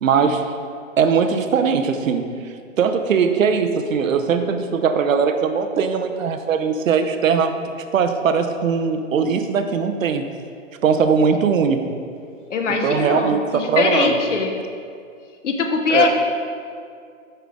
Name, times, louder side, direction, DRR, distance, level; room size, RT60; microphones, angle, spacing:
voice 1, 0.0-0.4 1.0-2.3 2.8-10.3 10.8-11.9 12.7-14.2 15.9-16.1, right 6 dB, 75° right, 7 dB, 0.7 m, -20 dB
voice 2, 12.5-14.5 15.4-16.1, left 4 dB, 65° left, 4 dB, 1.0 m, -21 dB
7.4 x 5.6 x 3.6 m, 2.3 s
hypercardioid pair, 170°, 40 cm